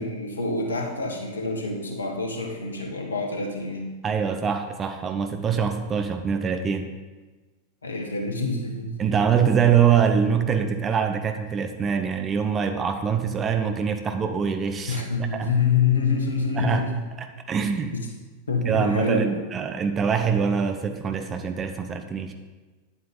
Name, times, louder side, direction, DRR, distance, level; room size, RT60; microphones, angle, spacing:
voice 1, 0.0-3.9 7.8-8.9 14.9-17.0 17.9-18.0 18.5-19.4, left 4 dB, 70° left, 2 dB, 1.5 m, -26 dB
voice 2, 4.0-6.9 9.0-15.0 15.3-15.5 16.6-16.9 17.2-17.9 18.6-22.3, right 7 dB, 25° right, 7 dB, 0.8 m, -24 dB
9.9 x 8.2 x 3.8 m, 1.2 s
figure-of-eight pair, 90°, 0 cm